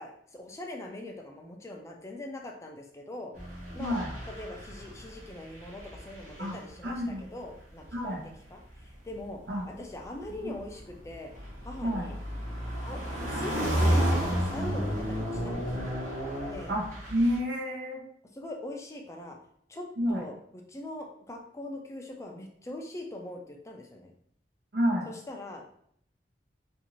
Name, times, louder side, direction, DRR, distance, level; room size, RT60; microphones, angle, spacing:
voice 1, 0.0-3.3 3.7-8.2 8.5-9.4 9.7-11.3 11.6-12.1 12.8-15.9 16.5-16.7 18.3-19.4 19.7-24.1 25.1-25.7, left 1 dB, 15° left, 1 dB, 0.4 m, -42 dB
sound 1, 3.3-5.3 5.6-6.8 7.9-8.1 10.2-17.4, equal, 45° right, 0.9 m, -31 dB
voice 2, 3.8-4.1 6.4-6.6 6.8-7.3 7.9-8.2 9.5-9.6 10.4-10.5 11.8-12.1 16.7-16.8 17.1-18.0 20.0-20.2 24.7-25.1, equal, 75° right, -1 dB, 0.8 m, -29 dB
2.6 x 2.4 x 2.9 m, 0.67 s
head